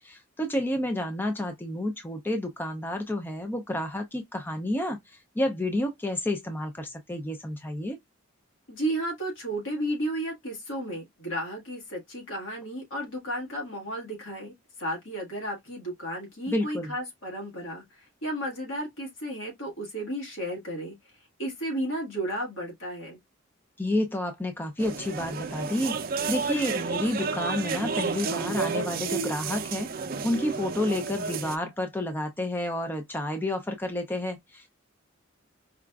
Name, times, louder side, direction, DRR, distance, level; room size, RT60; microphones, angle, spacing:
voice 1, 0.0-8.0 16.5-16.9 23.8-26.0 26.3-29.9 30.2-34.7, left 1 dB, 10° left, 0.4 m, -30 dB
voice 2, 8.7-14.5 14.8-21.0 21.4-23.2, right 1 dB, 75° left, 1.6 m, -33 dB
sound 1, 24.8-31.6, right 5 dB, 45° right, 0.5 m, -31 dB
4.7 x 2.4 x 2.2 m
head